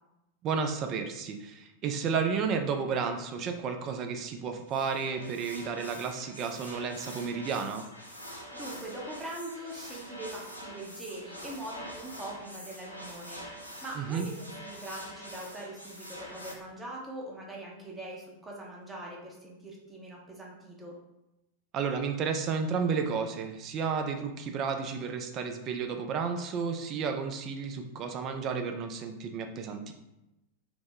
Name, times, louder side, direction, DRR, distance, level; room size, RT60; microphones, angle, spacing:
voice 1, 0.4-7.9 14.0-14.3 21.7-29.9, right 5 dB, 35° right, 6 dB, 0.4 m, -32 dB
sound 1, 4.7-16.5, equal, 90° left, 0.5 m, -45 dB
voice 2, 8.5-20.9, right 1 dB, 10° right, -3 dB, 0.7 m, -42 dB
2.9 x 2.1 x 3.7 m, 0.93 s
figure-of-eight pair, 90°, 0 cm